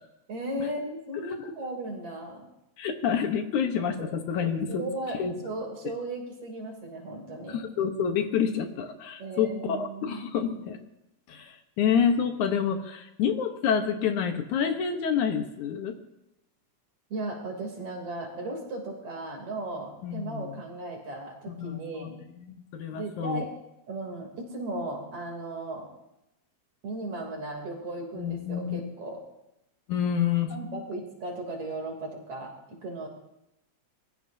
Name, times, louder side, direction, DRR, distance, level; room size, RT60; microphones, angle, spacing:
voice 1, 0.3-2.4 3.8-4.1 4.7-7.6 9.2-10.3 17.1-22.2 22.9-23.5 23.9-25.9 26.8-29.2 30.5-33.1, right 2 dB, 50° right, 1 dB, 4.1 m, -36 dB
voice 2, 2.8-4.8 5.2-5.3 7.5-10.8 11.3-16.0 20.0-20.5 21.5-23.4 28.2-28.8 29.9-30.5, left 7 dB, 70° left, 5 dB, 2.5 m, -28 dB
25.0 x 20.5 x 2.8 m, 0.88 s
omnidirectional pair, 3.6 m